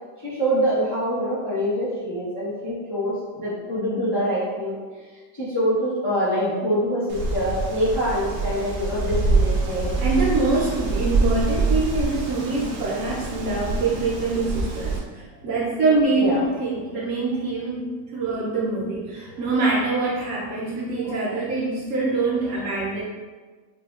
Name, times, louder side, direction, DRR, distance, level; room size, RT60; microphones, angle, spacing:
voice 1, 0.2-4.8 5.3-9.9 16.1-16.4 21.0-21.2, equal, 25° left, -11 dB, 0.5 m, -25 dB
Wind, 7.1-15.0, right 3 dB, 70° right, 1.1 m, -25 dB
voice 2, 10.0-23.0, right 3 dB, 90° right, -5 dB, 0.6 m, -24 dB
5.6 x 2.1 x 2.4 m, 1.4 s
omnidirectional pair, 2.1 m